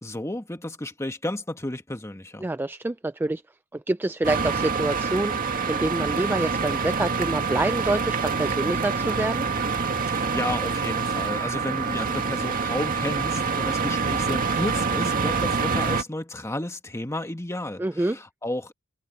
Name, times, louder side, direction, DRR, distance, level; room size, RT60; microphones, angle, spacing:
voice 1, 0.0-2.5 10.1-18.7, left 1 dB, 15° left, 1.4 m, -32 dB
voice 2, 2.4-3.4 3.7-9.5 17.8-18.2, right 2 dB, 10° right, 0.3 m, -27 dB
sound 1, 4.2-16.0, right 5 dB, 40° right, 2.0 m, -26 dB
head